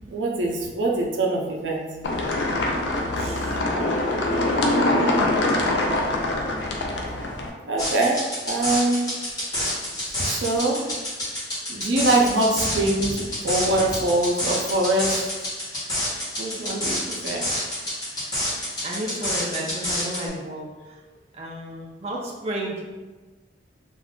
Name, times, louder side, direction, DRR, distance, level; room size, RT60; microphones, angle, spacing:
voice 1, 0.1-2.7 7.7-9.1 10.2-10.8 11.7-15.3 16.4-17.5, right 2 dB, 90° right, -1 dB, 0.5 m, -24 dB
sound 1, 2.0-7.5, left 1 dB, 75° left, 0.4 m, -23 dB
voice 2, 3.0-3.6 18.8-20.7 21.4-22.8, right 1 dB, 35° right, -3 dB, 0.4 m, -32 dB
sound 2, 7.8-20.3, left 1 dB, 20° left, 1.1 m, -29 dB
2.5 x 2.3 x 3.5 m, 1.2 s
head